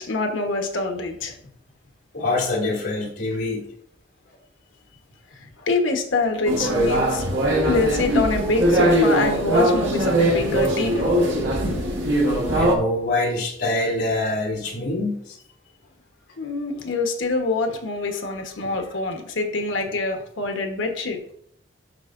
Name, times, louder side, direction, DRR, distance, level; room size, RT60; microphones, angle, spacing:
voice 1, 0.0-1.3 5.3-7.3 7.6-11.2 16.4-21.2, left 3 dB, 85° left, 4 dB, 1.2 m, -25 dB
voice 2, 2.1-3.7 12.6-15.4, left 2 dB, 65° left, -4 dB, 2.5 m, -25 dB
sound 1, 6.5-12.8, right 1 dB, 75° right, 1.7 m, -21 dB
11.0 x 4.4 x 2.5 m, 0.69 s
head